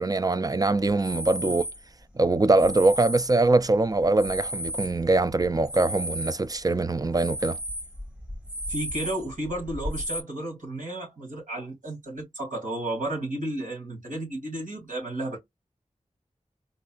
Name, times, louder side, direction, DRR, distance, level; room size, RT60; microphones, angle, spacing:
voice 1, 0.0-1.6 2.2-7.6, right 2 dB, 25° right, 0.4 m, -23 dB
sound 1, 0.9-1.9 2.6-3.6 4.0-6.5 6.8-10.2, equal, 5° right, 1.4 m, -34 dB
voice 2, 8.7-15.4, right 1 dB, 75° right, 2.7 m, -33 dB
4.2 x 2.7 x 2.4 m
wide cardioid pair, 50°, 14 cm